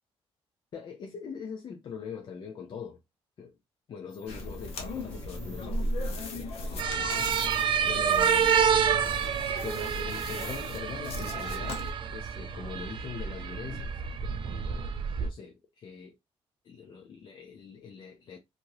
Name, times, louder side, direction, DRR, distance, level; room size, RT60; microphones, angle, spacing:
voice 1, 0.7-3.0 3.4-3.5 3.9-8.7 9.6-11.8 12.1-14.9 15.2-16.1 16.6-18.4, left 6 dB, 45° left, 0.5 m, -43 dB
sound 1, 4.1-6.7 7.2-7.3 7.8-8.3 8.7-8.8 9.0-9.5, left 1 dB, 15° left, 1.6 m, -52 dB
sound 2, 4.3-11.9, left 1 dB, 65° left, 0.9 m, -37 dB
sound 3, 6.8-15.3, right 7 dB, 50° right, 0.4 m, -28 dB
2.8 x 2.6 x 3.0 m
cardioid pair, 140°, 11 cm